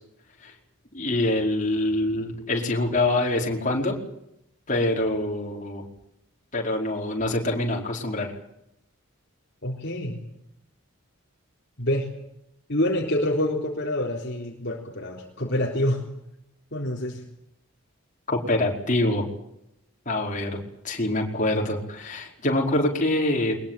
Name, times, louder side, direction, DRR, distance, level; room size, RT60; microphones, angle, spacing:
voice 1, 0.9-4.0 4.7-5.8 6.5-8.3 18.3-19.2 20.0-20.6 20.8-23.5, left 1 dB, 35° left, 0 dB, 5.0 m, -25 dB
voice 2, 9.6-10.2 11.8-12.1 12.7-16.0 16.7-17.2, left 1 dB, 55° left, 0 dB, 3.7 m, -26 dB
22.5 x 21.5 x 9.1 m, 0.81 s
head